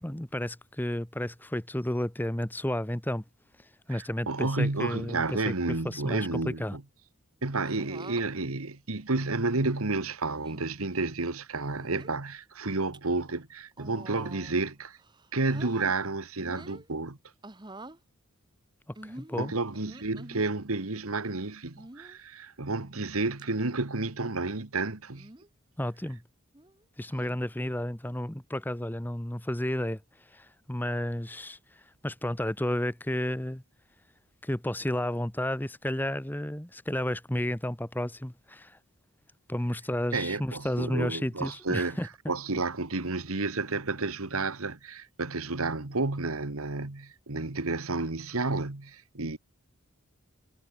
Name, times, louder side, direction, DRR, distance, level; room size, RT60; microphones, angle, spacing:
voice 1, 0.0-3.2 3.9-5.5 5.8-6.8 19.0-19.5 25.8-26.2 27.0-30.0 30.3-33.6 34.4-38.8 39.5-42.3, left 1 dB, 10° left, 1.0 m, -32 dB
voice 2, 3.9-6.8 7.4-15.0 15.3-17.2 19.4-25.3 40.1-42.0 42.3-49.4, right 3 dB, 80° right, 1.7 m, -31 dB
sound 1, 7.6-8.2 9.2-9.8 10.3-10.6 11.6-12.2 12.7-13.0 13.7-14.6 15.0-15.9 16.4-16.9 17.4-18.0 19.0-20.5 21.8-22.2 22.8-23.1 23.4-23.5 25.1-25.5 26.5-26.8, right 2 dB, 20° right, 1.3 m, -47 dB
head